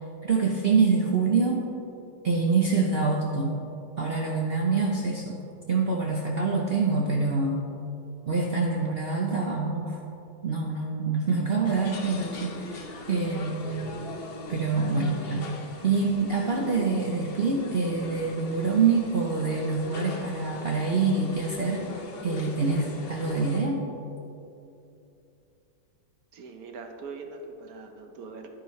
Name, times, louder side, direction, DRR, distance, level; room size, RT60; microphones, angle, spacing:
voice 1, 0.2-1.7 2.2-3.6 4.0-5.4 5.7-7.6 8.3-10.0 10.4-13.7 14.5-15.5 15.8-21.9 22.2-23.8, right 4 dB, 75° right, -1 dB, 0.5 m, -26 dB
sound 1, 11.6-23.6, left 3 dB, 60° left, 0.6 m, -40 dB
voice 2, 26.3-28.5, right 4 dB, 60° right, 4 dB, 1.1 m, -42 dB
10.5 x 9.8 x 3.1 m, 2.8 s
omnidirectional pair, 2.0 m